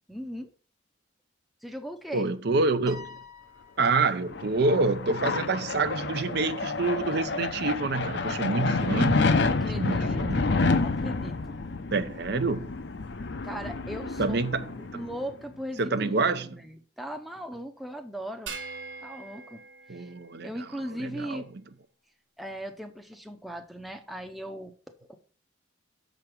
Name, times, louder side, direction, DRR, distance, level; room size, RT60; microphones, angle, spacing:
voice 1, 0.1-0.5 1.6-2.3 9.4-11.6 13.4-14.4 14.9-18.6 19.0-19.6 19.9-20.1 20.4-21.5 22.4-24.7 25.1-25.2, equal, ahead, 0.6 m, -38 dB
voice 2, 2.1-3.2 3.8-9.3 9.8-10.4 11.9-12.7 14.2-14.7 14.9-15.0 15.8-16.6 19.9-20.5 21.0-21.4, right 3 dB, 55° right, 0.6 m, -27 dB
Piano, 2.9-4.4, left 3 dB, 20° right, 1.1 m, -46 dB
sound 1, 4.0-15.3, left 3 dB, 60° left, 0.6 m, -29 dB
sound 2, 18.5-21.0, right 4 dB, 75° right, 1.4 m, -43 dB
6.7 x 5.1 x 6.0 m
head